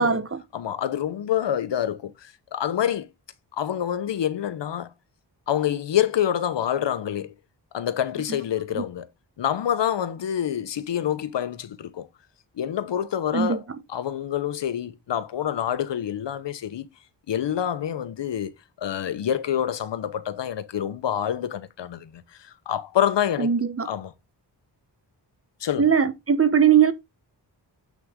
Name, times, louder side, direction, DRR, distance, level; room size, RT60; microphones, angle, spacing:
voice 1, 0.0-0.4 8.8-8.9 13.3-13.6 23.4-23.9 25.8-26.9, right 7 dB, 30° right, 1.0 m, -20 dB
voice 2, 0.5-3.1 3.6-4.9 5.5-7.3 7.7-9.1 9.4-12.1 12.6-13.6 13.9-16.9 17.3-18.5 18.8-23.5 23.9-24.1 25.6-25.9, left 10 dB, 80° left, 1.0 m, -27 dB
7.6 x 6.2 x 3.6 m
wide cardioid pair, 85°, 43 cm